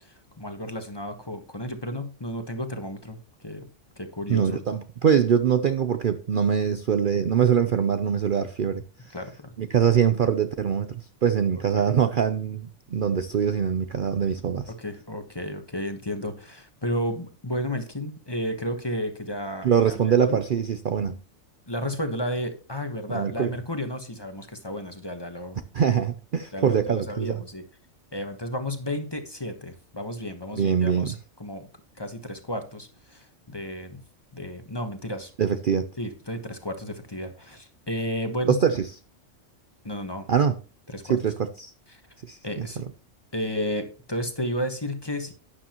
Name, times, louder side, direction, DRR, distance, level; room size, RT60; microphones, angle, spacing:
voice 1, 0.0-3.7 4.0-4.6 9.1-9.5 11.7-11.9 14.8-20.4 21.7-25.6 26.5-27.6 28.1-31.1 31.4-31.7 32.0-34.0 34.3-35.3 36.0-38.6 39.8-40.3 40.9-41.2 41.9-42.0 42.4-42.8 43.3-45.3, equal, 20° left, 1.2 m, -32 dB
voice 2, 4.3-9.2 9.6-14.7 19.6-21.2 23.1-23.5 25.7-27.4 30.5-31.2 35.4-35.9 38.5-38.8 40.3-40.6 41.0-41.7 42.3-42.7, right 7 dB, 55° right, 0.7 m, -23 dB
11.5 x 9.7 x 3.0 m
omnidirectional pair, 1.3 m